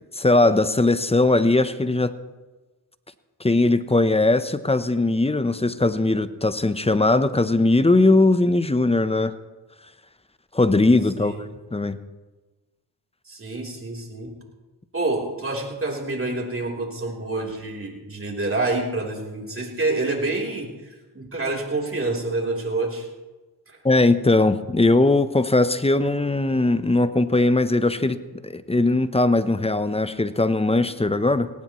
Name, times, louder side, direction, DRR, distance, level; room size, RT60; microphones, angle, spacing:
voice 1, 0.0-2.1 3.4-9.3 10.5-11.3 11.7-12.0 23.8-28.2 28.4-31.5, left 2 dB, 15° left, 13 dB, 0.8 m, -20 dB
voice 2, 13.3-14.3 14.9-23.1 23.7-23.8, right 2 dB, 30° right, -1 dB, 3.6 m, -27 dB
18.0 x 18.0 x 3.1 m, 1.2 s
cardioid pair, 65°, 44 cm